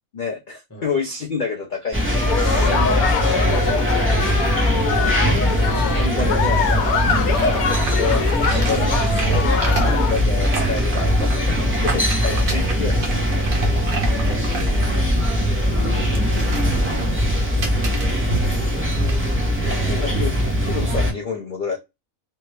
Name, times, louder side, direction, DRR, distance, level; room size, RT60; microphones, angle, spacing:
voice 1, 0.1-2.4 4.0-4.5 5.6-7.6 7.9-8.2 8.5-9.3 9.9-13.4 17.5-17.9 19.9-21.8, left 4 dB, 60° left, 0.5 m, -29 dB
voice 2, 0.7-1.0 7.6-8.2 9.5-9.7 11.6-12.5 13.4-15.2 15.8-16.9 19.5-20.2 20.9-21.0, equal, 15° left, 0.8 m, -38 dB
sound 1, 1.9-21.1, equal, 15° right, 0.6 m, -20 dB
sound 2, 2.1-10.1, left 6 dB, 75° left, 1.1 m, -24 dB
sound 3, 7.0-19.3, right 2 dB, 70° right, 1.4 m, -31 dB
3.3 x 2.1 x 3.2 m
omnidirectional pair, 1.5 m